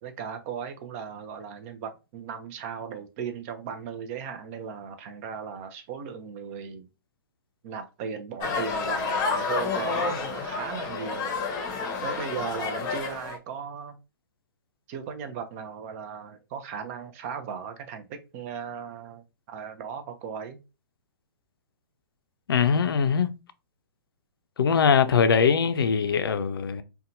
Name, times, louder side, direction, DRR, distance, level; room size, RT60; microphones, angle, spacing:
voice 1, 0.0-6.9 7.6-11.4 12.0-14.0 14.9-20.6, right 7 dB, 40° right, 0.5 m, -37 dB
sound 1, 8.4-13.4, left 4 dB, 30° left, 0.7 m, -29 dB
voice 2, 22.5-23.3 24.6-26.8, left 6 dB, 80° left, 0.4 m, -22 dB
2.7 x 2.2 x 2.6 m
hypercardioid pair, 130°, 12 cm